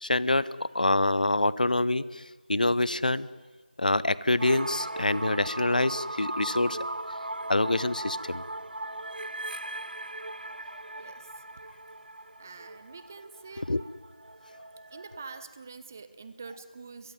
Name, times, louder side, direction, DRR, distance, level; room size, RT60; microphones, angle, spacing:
voice 1, 0.0-2.0 2.5-3.3 3.8-6.8 7.5-8.4 13.7-13.8, left 2 dB, 55° left, 19 dB, 0.8 m, -26 dB
sound 1, 4.4-15.4, right 2 dB, 65° right, 0.9 m, -38 dB
voice 2, 11.0-11.3 12.4-13.7 14.9-17.1, right 4 dB, 15° right, 12 dB, 0.8 m, -45 dB
23.0 x 22.5 x 9.4 m, 1.3 s
figure-of-eight pair, 170°, 5 cm